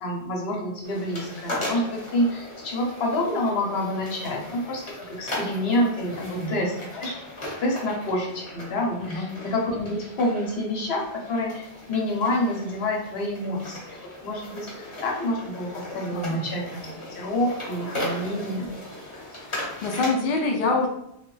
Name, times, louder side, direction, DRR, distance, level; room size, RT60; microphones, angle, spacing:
voice 1, 0.0-7.2 7.6-16.8 17.1-18.7, left 1 dB, 80° left, -1 dB, 1.0 m, -28 dB
sound 1, 0.8-20.1, left 1 dB, 30° left, 0.8 m, -37 dB
voice 2, 6.2-6.5 9.0-9.3 16.1-16.4 19.4-20.9, left 3 dB, 60° left, 0 dB, 0.6 m, -26 dB
3.1 x 2.1 x 3.1 m, 0.81 s
omnidirectional pair, 1.1 m